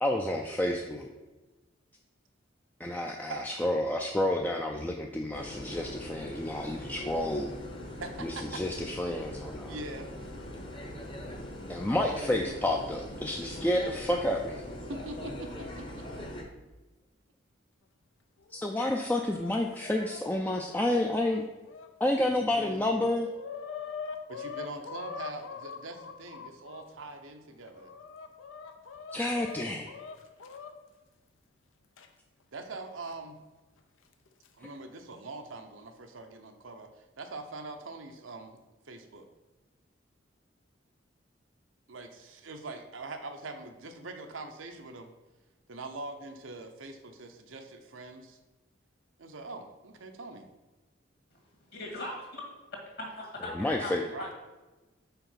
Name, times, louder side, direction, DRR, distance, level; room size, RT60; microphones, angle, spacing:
voice 1, 0.0-1.1 2.8-7.5 8.2-9.7 11.7-14.6 18.5-21.4 22.0-23.3 29.1-29.9 53.5-54.0, left 1 dB, 10° left, 1 dB, 0.3 m, -30 dB
voice 2, 3.3-3.7 8.0-8.9 9.6-10.1 14.9-16.1 22.2-23.1 24.3-27.9 32.5-33.4 34.6-36.9 37.2-38.6 38.9-39.2 41.9-45.1 45.7-48.4 49.2-50.5 54.0-54.3, right 2 dB, 85° right, 5 dB, 0.8 m, -43 dB
sound 1, 5.3-16.4, left 1 dB, 25° left, 0.8 m, -41 dB
Chicken rooster, 18.4-21.9 22.4-22.5 22.8-26.8 27.5-30.7 32.0-32.1 33.1-33.2 34.1-34.5, left 6 dB, 85° left, 0.7 m, -43 dB
voice 3, 51.7-52.4 53.0-54.3, left 1 dB, 50° left, 0 dB, 1.9 m, -39 dB
5.7 x 4.4 x 5.7 m, 1.2 s
head